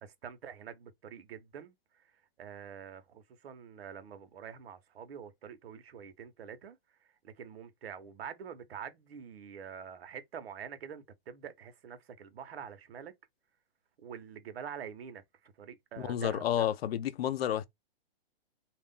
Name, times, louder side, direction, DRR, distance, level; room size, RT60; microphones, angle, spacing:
voice 1, 0.0-13.1 14.0-16.7, right 7 dB, 85° right, 0.8 m, -46 dB
voice 2, 16.0-17.6, left 11 dB, 85° left, 0.5 m, -30 dB
2.4 x 2.2 x 3.5 m
hypercardioid pair, 150°, 30 cm